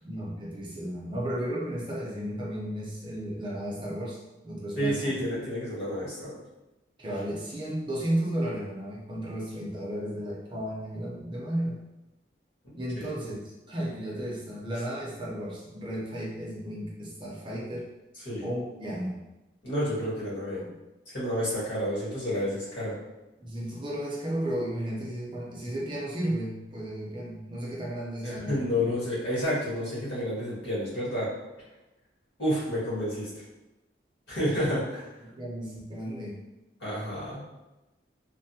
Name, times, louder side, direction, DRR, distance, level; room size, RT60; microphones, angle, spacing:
voice 1, 0.0-4.2 4.4-5.1 7.0-11.8 12.7-17.9 18.4-19.2 20.5-20.7 23.4-28.9 34.5-34.6 35.2-36.4, right 1 dB, 25° right, -4 dB, 0.5 m, -34 dB
voice 2, 4.8-6.4 13.0-13.1 18.2-18.5 19.6-20.6 21.1-22.9 28.2-31.3 32.4-33.4 34.3-35.1 36.8-37.5, equal, 85° left, -8 dB, 1.5 m, -30 dB
3.2 x 2.1 x 2.6 m, 1.0 s
head